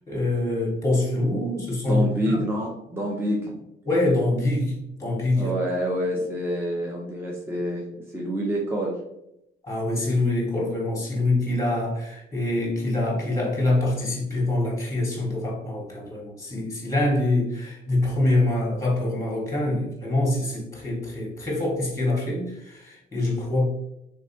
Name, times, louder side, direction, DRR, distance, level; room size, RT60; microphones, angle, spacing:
voice 1, 0.1-2.4 3.8-5.5 9.6-23.7, left 2 dB, 15° left, -2 dB, 1.5 m, -25 dB
voice 2, 1.9-3.6 5.4-7.9 8.1-9.0, equal, 10° right, -2 dB, 0.7 m, -27 dB
3.4 x 3.2 x 2.8 m, 0.84 s
cardioid pair, 90°, 20 cm